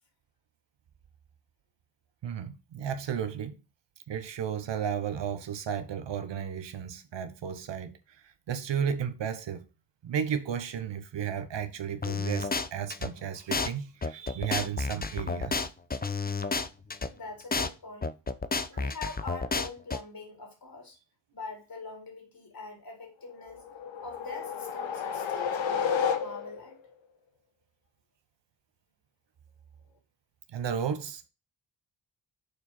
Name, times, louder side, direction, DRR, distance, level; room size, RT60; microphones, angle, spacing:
voice 1, 2.2-3.6 4.1-8.0 8.2-9.7 10.0-15.7 30.5-31.3, right 8 dB, 65° right, 1.1 m, -33 dB
sound 1, 12.0-13.1 13.5-13.7 14.0-17.1 17.5-17.7 18.0-20.0, left 4 dB, 20° left, 0.7 m, -30 dB
voice 2, 17.0-18.1 18.7-21.0 21.3-23.6 24.0-26.8, left 3 dB, 50° left, 4.0 m, -43 dB
sound 2, 23.5-26.7, left 7 dB, 80° left, 1.1 m, -31 dB
6.6 x 4.5 x 4.3 m
supercardioid pair, 45°, 46 cm